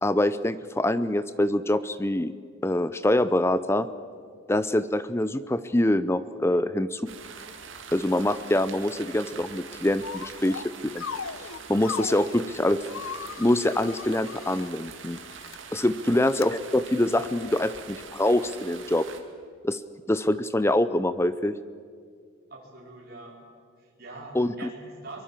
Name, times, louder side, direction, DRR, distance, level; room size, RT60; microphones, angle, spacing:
voice 1, 0.0-2.3 2.6-3.9 4.5-7.0 7.9-11.1 11.7-12.8 13.4-15.2 15.7-19.1 19.6-19.8 20.1-21.6 24.3-24.5, left 1 dB, 15° left, 14 dB, 0.6 m, -25 dB
sound 1, 7.1-19.2, right 6 dB, 70° right, 2.3 m, -44 dB
sound 2, 10.0-10.7 11.0-12.4 12.9-14.7 15.3-15.6 16.3-16.5, left 6 dB, 85° left, 0.9 m, -37 dB
voice 2, 22.5-23.4 23.8-25.2, right 2 dB, 50° right, -4 dB, 4.7 m, -44 dB
23.5 x 22.5 x 7.4 m, 2.1 s
head